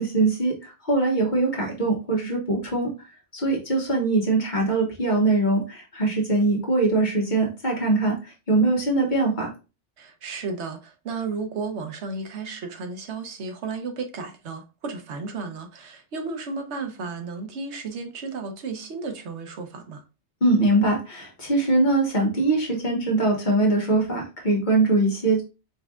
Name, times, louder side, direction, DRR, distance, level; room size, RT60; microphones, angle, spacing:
voice 1, 0.0-2.9 3.3-9.5 20.4-25.4, right 2 dB, 45° left, 1.5 m, -22 dB
voice 2, 10.0-20.0, right 4 dB, 85° right, 1.1 m, -33 dB
4.6 x 3.4 x 2.3 m
omnidirectional pair, 1.1 m